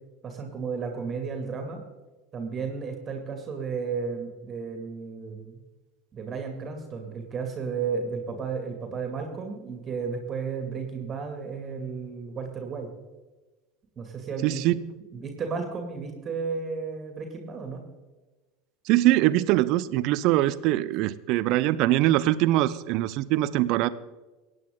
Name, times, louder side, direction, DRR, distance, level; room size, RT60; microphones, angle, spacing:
voice 1, 0.2-1.8 2.3-5.6 6.1-12.9 14.0-14.6 15.1-17.8, right 5 dB, 30° right, 4 dB, 2.4 m, -33 dB
voice 2, 14.4-14.9 18.9-23.9, right 15 dB, 50° right, 17 dB, 0.6 m, -23 dB
24.5 x 9.4 x 3.8 m, 1.2 s
figure-of-eight pair, 75°, 0 cm